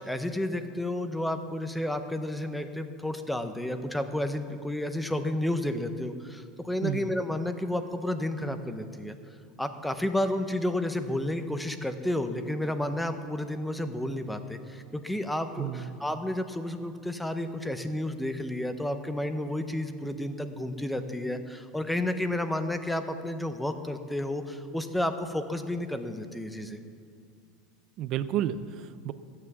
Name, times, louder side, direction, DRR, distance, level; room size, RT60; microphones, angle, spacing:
voice 1, 0.0-9.1 9.6-26.8, left 1 dB, 5° left, 8 dB, 0.8 m, -31 dB
voice 2, 6.8-7.1 15.6-16.0 28.0-29.1, right 11 dB, 40° right, 14 dB, 0.6 m, -31 dB
14.5 x 9.6 x 7.3 m, 2.3 s
supercardioid pair, 155°, 0 cm